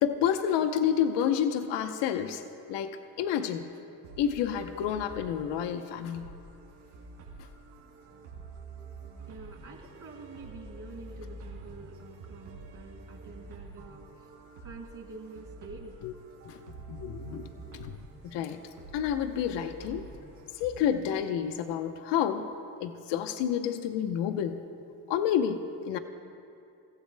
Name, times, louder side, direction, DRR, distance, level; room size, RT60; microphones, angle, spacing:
voice 1, 0.0-2.4 2.7-3.7 4.2-6.3 16.0-16.1 16.4-18.0 18.2-18.6 18.9-20.1 20.5-22.5 22.8-24.6 25.1-26.0, left 9 dB, 70° left, 8 dB, 0.9 m, -29 dB
sound 1, 4.0-20.9, right 3 dB, 85° right, 3.3 m, -48 dB
sound 2, 9.2-14.3, right 1 dB, 70° right, 3.0 m, -55 dB
voice 2, 9.3-14.3 14.6-16.0, right 4 dB, 45° right, -4 dB, 3.2 m, -47 dB
28.0 x 15.0 x 2.2 m, 2.5 s
supercardioid pair, 75°, 44 cm